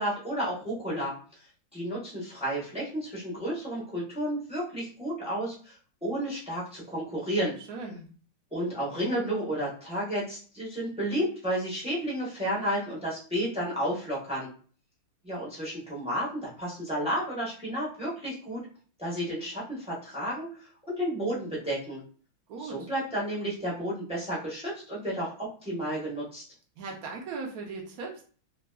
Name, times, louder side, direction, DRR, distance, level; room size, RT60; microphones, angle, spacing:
voice 1, 0.0-1.5 1.7-5.8 6.0-7.5 8.5-14.5 15.2-18.6 19.0-22.0 22.6-26.4, equal, 10° right, -6 dB, 0.4 m, -32 dB
voice 2, 7.7-8.1 22.5-22.9 26.8-28.2, right 4 dB, 70° right, 0 dB, 0.9 m, -38 dB
3.7 x 2.2 x 2.3 m, 0.42 s
omnidirectional pair, 2.3 m